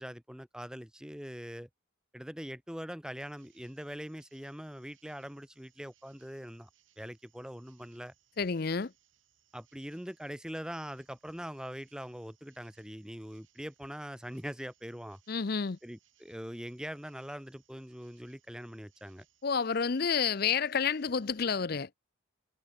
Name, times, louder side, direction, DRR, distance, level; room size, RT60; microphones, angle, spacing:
voice 1, 0.0-1.7 2.1-6.7 7.0-8.1 9.5-15.2 15.8-19.3, equal, 5° right, 1.0 m, -42 dB
sound 1, 3.2-21.4, right 11 dB, 70° right, 7.4 m, -71 dB
voice 2, 8.4-8.9 15.3-15.8 19.4-21.9, left 6 dB, 45° left, 0.6 m, -29 dB
head